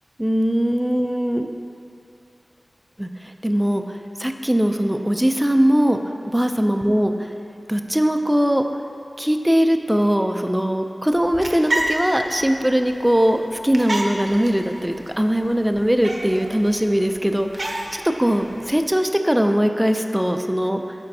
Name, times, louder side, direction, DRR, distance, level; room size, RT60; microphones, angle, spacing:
voice 1, 0.2-1.5 3.0-3.1 3.4-6.0 6.3-7.3 7.7-8.6 9.2-20.8, equal, 10° right, 6 dB, 0.4 m, -20 dB
sound 1, 11.1-18.9, right 1 dB, 55° right, 0.7 m, -31 dB
11.5 x 4.4 x 2.7 m, 2.6 s
cardioid pair, 40°, 0 cm